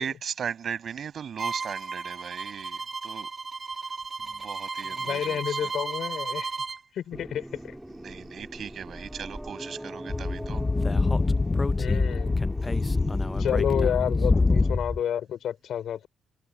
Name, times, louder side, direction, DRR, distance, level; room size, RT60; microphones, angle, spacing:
voice 1, 0.0-3.3 4.2-5.7 7.9-10.6 12.6-13.2, right 7 dB, 55° right, 5.7 m, -38 dB
Bowed string instrument, 1.4-6.8, right 4 dB, 35° right, 1.4 m, -34 dB
voice 2, 4.9-6.5 6.9-7.8 11.8-12.4 13.0-13.1 13.4-16.1, left 9 dB, 70° left, 5.0 m, -30 dB
sound 1, 7.1-14.8, right 1 dB, 5° right, 2.2 m, -40 dB
Speech / Wind, 10.1-15.0, left 3 dB, 25° left, 0.4 m, -24 dB
cardioid pair, 95°, 0 cm